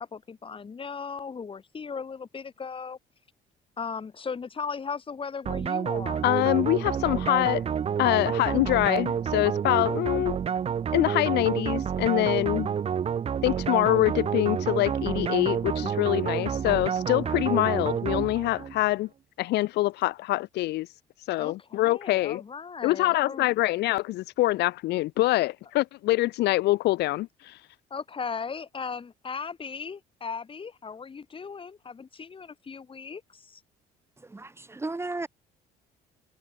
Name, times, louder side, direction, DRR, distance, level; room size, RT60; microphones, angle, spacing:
voice 1, 0.0-3.0 3.8-6.2 21.4-23.5 27.9-33.6, left 5 dB, 30° left, 8.0 m, -37 dB
sound 1, 5.5-18.8, right 8 dB, 35° right, 0.8 m, -29 dB
voice 2, 6.2-7.6 8.0-10.4 10.9-12.7 13.4-19.1 19.4-20.9 21.3-22.4 22.8-27.6, left 17 dB, 80° left, 1.7 m, -25 dB
voice 3, 34.2-35.3, right 2 dB, 15° right, 2.6 m, -34 dB
cardioid pair, 110°, 17 cm